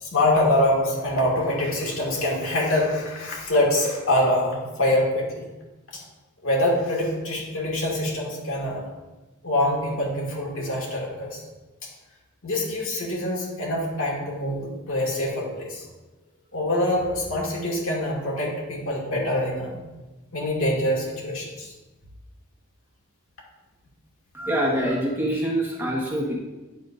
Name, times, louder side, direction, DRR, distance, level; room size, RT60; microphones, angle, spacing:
voice 1, 0.0-5.5 5.9-6.0 6.4-8.8 9.4-11.4 12.4-15.8 16.5-19.8 20.3-21.7, left 1 dB, 65° left, -3 dB, 2.0 m, -25 dB
voice 2, 24.3-26.4, right 1 dB, 10° right, -3 dB, 1.3 m, -25 dB
9.5 x 6.9 x 2.6 m, 1.1 s
head